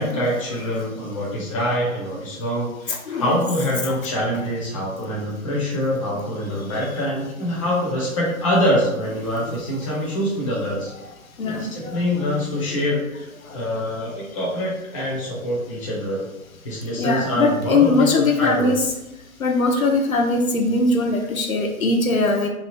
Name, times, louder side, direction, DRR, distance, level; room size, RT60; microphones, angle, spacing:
voice 1, 0.0-10.9 11.5-16.3 16.6-18.7, equal, 25° left, -5 dB, 0.6 m, -25 dB
voice 2, 2.9-3.4 11.4-11.7 17.0-18.8 19.4-22.5, left 3 dB, 70° left, 2 dB, 0.7 m, -20 dB
2.9 x 2.3 x 3.1 m, 0.94 s
figure-of-eight pair, 125°, 43 cm